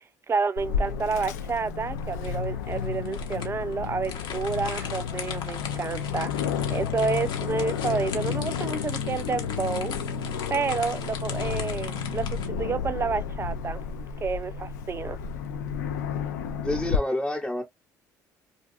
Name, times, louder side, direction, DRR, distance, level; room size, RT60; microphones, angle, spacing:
voice 1, 0.3-6.3 6.7-9.9 10.5-13.8 14.2-15.2, right 5 dB, 30° right, 0.4 m, -29 dB
Aircraft, 0.6-17.0, left 7 dB, 90° left, 0.4 m, -31 dB
sound 1, 1.9-12.5, left 7 dB, 60° left, 0.8 m, -40 dB
voice 2, 16.6-17.6, left 1 dB, 5° left, 0.7 m, -28 dB
2.4 x 2.2 x 2.6 m
hypercardioid pair, 60°, 9 cm